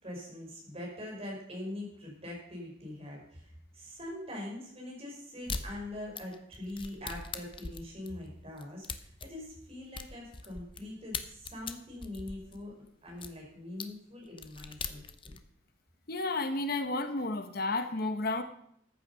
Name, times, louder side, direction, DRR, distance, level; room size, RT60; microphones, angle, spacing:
voice 1, 0.0-12.7 13.0-15.4, left 1 dB, 30° right, -1 dB, 4.9 m, -43 dB
sound 1, 5.5-5.7 6.2-10.8 11.1-13.3 13.8-13.9 14.3-15.4, left 5 dB, 25° left, 0.8 m, -40 dB
voice 2, 16.1-18.4, left 2 dB, 50° left, 8 dB, 1.0 m, -32 dB
14.0 x 9.0 x 5.6 m, 0.72 s
head